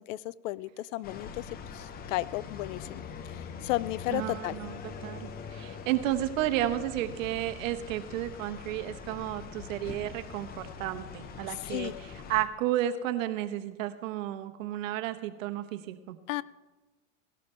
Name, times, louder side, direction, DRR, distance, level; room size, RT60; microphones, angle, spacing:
voice 1, 0.1-4.6 11.6-11.9 16.3-16.4, left 17 dB, 70° left, 21 dB, 0.5 m, -34 dB
sound 1, 1.0-12.5, left 6 dB, 25° left, 0.6 m, -43 dB
voice 2, 4.1-11.9 12.3-16.2, right 13 dB, 70° right, 9 dB, 1.1 m, -32 dB
17.0 x 12.0 x 3.3 m, 1.2 s
supercardioid pair, 140°, 41 cm